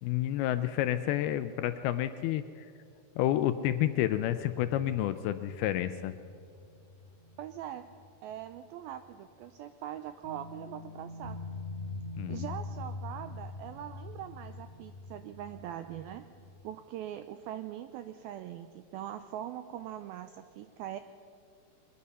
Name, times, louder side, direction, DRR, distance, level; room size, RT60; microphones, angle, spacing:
voice 1, 0.0-2.7 3.2-6.1 12.2-12.5, left 12 dB, 80° left, 10 dB, 2.3 m, -30 dB
sound 1, 3.2-8.6 8.9-9.0 10.2-16.8, left 2 dB, 65° left, 3.4 m, -45 dB
voice 2, 7.4-7.9 8.2-11.4 12.3-16.3 16.6-21.0, right 11 dB, 85° right, 9 dB, 2.1 m, -42 dB
23.0 x 20.5 x 5.5 m, 2.5 s
omnidirectional pair, 4.9 m